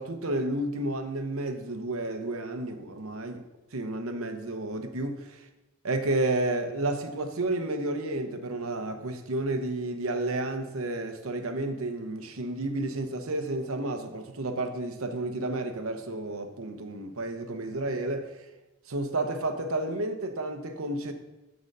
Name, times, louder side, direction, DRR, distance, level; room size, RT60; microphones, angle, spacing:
voice 1, 0.0-3.4 3.7-5.5 5.8-18.5 18.8-21.1, right 2 dB, 70° right, 0.9 m, -31 dB
9.4 x 3.9 x 6.6 m
head